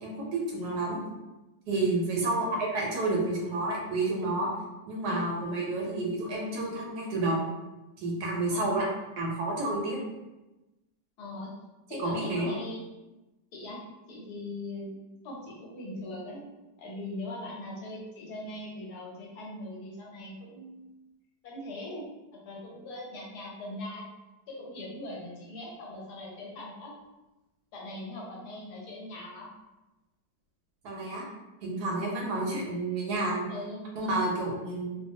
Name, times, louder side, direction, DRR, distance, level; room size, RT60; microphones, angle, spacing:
voice 1, 0.0-1.0 1.7-4.5 4.9-7.5 8.0-8.8 9.2-10.0 12.0-12.5 30.8-31.2 31.6-33.5 34.0-35.0, right 2 dB, 75° right, -3 dB, 1.1 m, -30 dB
voice 2, 2.2-2.6 8.5-8.9 11.2-11.5 11.9-12.8 13.5-13.8 14.1-14.9 15.2-16.4 16.8-20.8 21.4-22.1 22.3-24.0 24.5-26.9 27.7-29.5 33.5-33.8, left 1 dB, 70° left, -3 dB, 1.1 m, -40 dB
2.7 x 2.3 x 2.6 m, 1.0 s
omnidirectional pair, 1.9 m